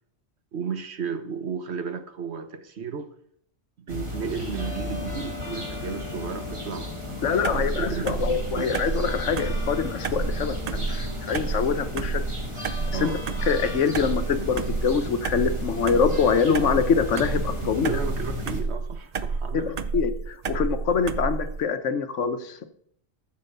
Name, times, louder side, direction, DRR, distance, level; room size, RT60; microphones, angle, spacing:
voice 1, 0.5-3.1 3.9-8.8 12.9-13.3 17.6-19.7, right 6 dB, 65° right, 1.3 m, -34 dB
sound 1, 3.9-18.6, left 2 dB, 25° right, 2.3 m, -34 dB
voice 2, 7.2-12.2 13.0-13.1 13.5-17.9 19.5-22.6, left 6 dB, 85° left, 1.3 m, -25 dB
sound 2, 7.4-21.6, right 4 dB, 45° right, 0.5 m, -30 dB
14.0 x 5.4 x 6.7 m
omnidirectional pair, 1.2 m